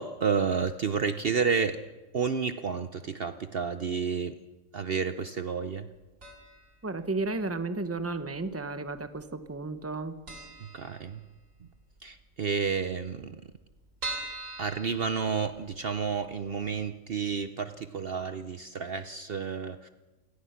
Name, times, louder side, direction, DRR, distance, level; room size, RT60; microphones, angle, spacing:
voice 1, 0.0-1.8 2.1-4.4 4.7-5.9 10.6-11.3 11.6-11.7 12.0-13.4 14.6-19.9, right 6 dB, 50° right, 10 dB, 0.9 m, -30 dB
sound 1, 6.2-6.7 7.0-7.1 8.0-8.7 9.0-9.2 9.5-9.6 9.9-10.0 10.3-11.6 12.0-12.1 12.3-12.4 12.6-12.7 13.2-15.8 16.3-16.4 16.8-16.9, right 2 dB, 85° right, 3.7 m, -41 dB
voice 2, 6.8-10.1, right 3 dB, 10° right, 10 dB, 1.0 m, -33 dB
28.5 x 17.5 x 5.8 m, 1.2 s
omnidirectional pair, 1.4 m